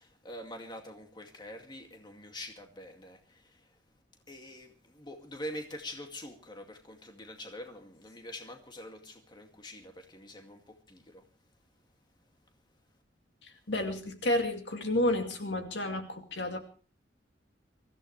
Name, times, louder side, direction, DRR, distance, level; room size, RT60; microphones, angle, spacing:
voice 1, 0.0-3.6 4.3-11.2, left 1 dB, 25° left, 3 dB, 2.3 m, -45 dB
voice 2, 13.4-16.6, left 1 dB, 65° left, 5 dB, 2.4 m, -31 dB
24.0 x 15.5 x 3.3 m, 0.37 s
head